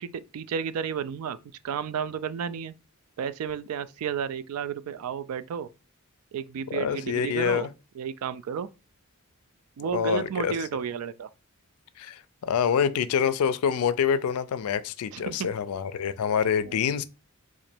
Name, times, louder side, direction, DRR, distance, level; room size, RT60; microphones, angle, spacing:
voice 1, 0.0-1.4 1.6-2.7 3.2-5.7 6.3-7.7 8.0-8.7 9.8-11.3 15.1-15.5 16.6-16.8, right 7 dB, 85° right, 0.3 m, -32 dB
voice 2, 6.7-7.7 9.9-10.5 12.0-17.0, left 7 dB, 85° left, 0.3 m, -26 dB
3.0 x 2.5 x 4.3 m
head